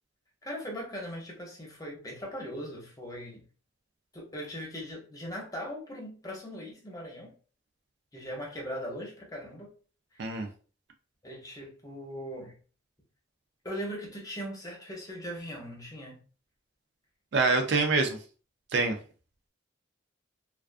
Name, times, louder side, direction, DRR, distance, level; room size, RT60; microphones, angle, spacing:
voice 1, 0.4-3.4 4.1-7.3 8.1-9.7 10.1-10.2 11.2-12.5 13.6-16.2, equal, 20° left, -1 dB, 0.7 m, -39 dB
voice 2, 17.3-18.2 18.7-19.0, right 3 dB, 60° right, 4 dB, 0.4 m, -25 dB
2.3 x 2.3 x 2.4 m, 0.38 s
head